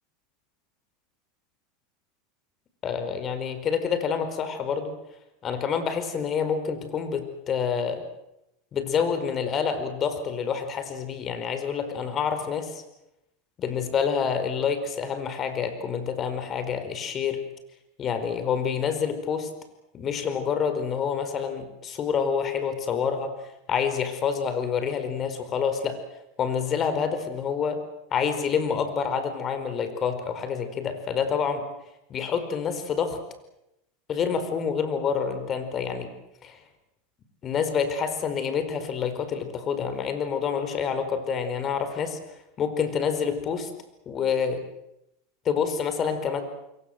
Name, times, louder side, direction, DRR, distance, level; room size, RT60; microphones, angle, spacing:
voice 1, 2.8-4.9 5.4-8.1 8.7-12.8 13.6-17.4 18.0-19.5 19.9-23.3 23.7-26.0 26.4-27.8 28.1-31.6 32.1-33.2 34.1-36.1 36.4-36.6 37.4-42.2 42.6-43.7 44.1-44.6 45.4-46.4, left 6 dB, 35° left, 9 dB, 4.7 m, -27 dB
27.0 x 23.0 x 7.8 m, 0.86 s
supercardioid pair, 120°, 0 cm